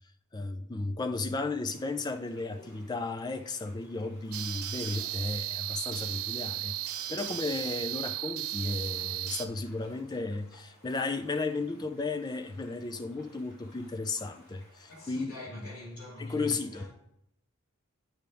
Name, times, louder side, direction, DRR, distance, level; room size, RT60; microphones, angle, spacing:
voice 1, 0.3-15.3 15.6-15.7 16.2-16.9, left 3 dB, 20° left, 0.4 m, -34 dB
sound 1, 1.7-15.2, left 1 dB, 45° left, 2.8 m, -59 dB
sound 2, 4.3-9.5, right 13 dB, 85° right, 0.5 m, -35 dB
voice 2, 14.9-16.9, left 1 dB, 85° left, 2.4 m, -43 dB
8.6 x 4.7 x 3.4 m
head